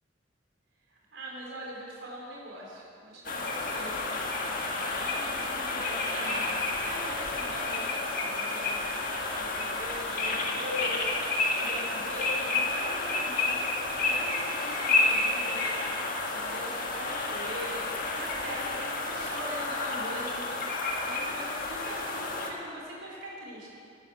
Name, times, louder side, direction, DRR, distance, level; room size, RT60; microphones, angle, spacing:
voice 1, 0.9-4.2 4.6-11.1 11.4-15.6 16.3-20.6 21.0-23.7, equal, 80° right, -3 dB, 3.8 m, -41 dB
sound 1, 3.2-22.5, left 3 dB, 45° left, 1.7 m, -30 dB
17.5 x 9.9 x 6.3 m, 2.6 s
head